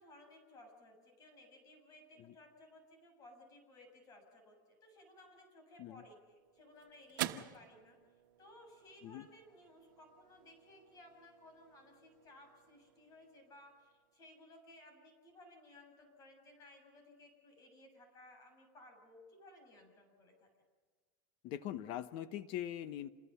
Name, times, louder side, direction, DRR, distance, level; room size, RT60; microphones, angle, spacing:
voice 1, 0.0-8.0 8.4-20.5, left 1 dB, 35° left, 4 dB, 7.5 m, -59 dB
sound 1, 5.9-14.5, right 14 dB, 85° right, 1.2 m, -49 dB
voice 2, 21.4-23.1, left 11 dB, 50° left, 13 dB, 1.0 m, -42 dB
28.5 x 20.5 x 5.8 m, 1.5 s
supercardioid pair, 135°, 11 cm